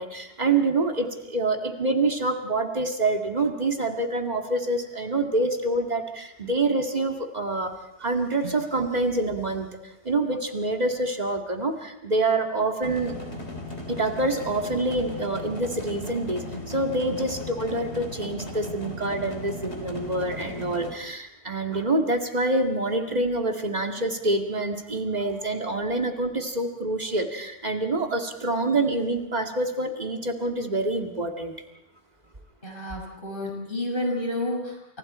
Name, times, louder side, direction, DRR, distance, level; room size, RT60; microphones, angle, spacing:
voice 1, 0.0-7.7 8.0-13.1 13.9-31.5, right 2 dB, 40° right, 3 dB, 2.4 m, -26 dB
sound 1, 12.8-20.9, left 2 dB, 90° left, 3.9 m, -37 dB
voice 2, 32.6-35.0, left 1 dB, 55° left, 0 dB, 6.7 m, -30 dB
29.5 x 28.5 x 4.4 m, 0.84 s
omnidirectional pair, 1.1 m